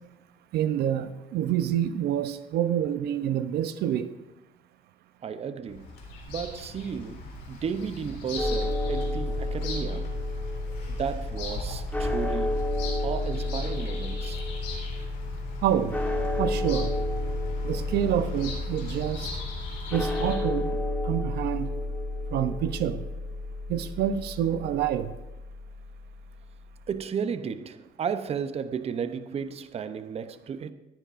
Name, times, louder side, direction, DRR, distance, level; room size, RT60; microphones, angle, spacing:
voice 1, 0.5-4.1 13.7-13.8 15.6-16.0 16.4-16.9 17.6-19.3 19.9-20.8 21.0-21.7 22.3-23.0 23.7-25.1, right 10 dB, 70° right, 0.6 m, -27 dB
voice 2, 5.2-5.9 6.3-7.2 7.5-10.2 10.9-12.6 13.0-14.4 26.9-30.7, right 7 dB, 35° right, 0.7 m, -33 dB
Bird vocalization bird call bird song, 5.7-20.4, left 3 dB, 80° left, 3.8 m, -40 dB
sound 1, 8.4-26.2, left 2 dB, 10° left, 2.0 m, -31 dB
19.5 x 10.0 x 2.5 m
cardioid pair, 110°, 17 cm